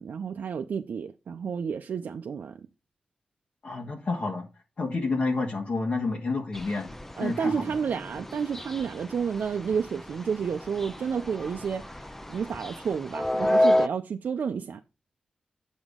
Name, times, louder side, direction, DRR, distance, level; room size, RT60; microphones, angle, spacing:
voice 1, 0.0-2.6 7.2-11.8 12.3-14.8, right 6 dB, 80° right, 0.5 m, -30 dB
voice 2, 3.6-4.5 4.8-7.6, left 3 dB, 65° left, 1.6 m, -29 dB
sound 1, 6.5-13.9, left 1 dB, 10° left, 0.6 m, -30 dB
8.0 x 6.1 x 3.6 m
cardioid pair, 55°, 3 cm